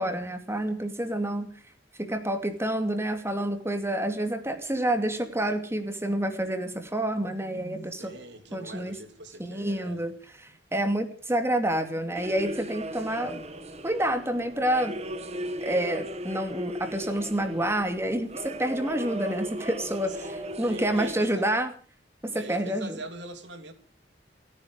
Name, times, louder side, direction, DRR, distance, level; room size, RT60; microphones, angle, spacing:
voice 1, 0.0-1.5 2.0-8.1 8.5-8.9 9.4-10.1 10.4-13.4 13.8-15.0 15.6-21.7 22.2-23.0, right 1 dB, 15° right, 2.4 m, -28 dB
voice 2, 8.0-10.0 20.6-21.5 22.3-23.7, right 2 dB, 80° right, 3.2 m, -43 dB
sound 1, 12.1-21.2, equal, 40° right, 2.2 m, -37 dB
29.0 x 10.0 x 5.0 m
head